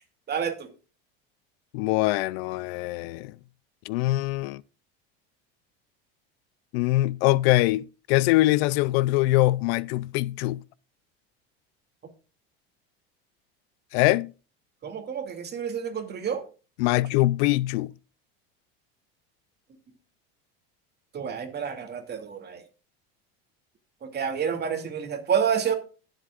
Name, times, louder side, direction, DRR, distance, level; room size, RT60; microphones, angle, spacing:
voice 1, 0.3-0.7 14.8-16.4 21.1-22.6 24.0-25.7, right 7 dB, 30° right, 2.6 m, -29 dB
voice 2, 1.7-3.3 3.8-4.6 6.7-10.6 13.9-14.3 16.8-17.9, left 18 dB, 75° left, 0.5 m, -23 dB
19.5 x 7.7 x 2.5 m
supercardioid pair, 115°, 31 cm